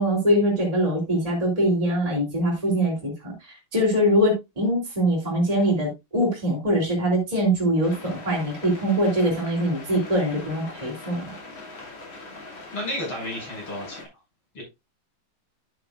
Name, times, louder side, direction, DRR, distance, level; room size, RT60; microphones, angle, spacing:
voice 1, 0.0-11.3, equal, 15° right, -3 dB, 3.0 m, -23 dB
sound 1, 7.8-14.0, left 3 dB, 70° left, 3.5 m, -41 dB
voice 2, 12.7-14.1 14.5-14.6, left 1 dB, 85° left, -1 dB, 7.0 m, -32 dB
10.0 x 9.2 x 2.4 m, 0.22 s
omnidirectional pair, 2.3 m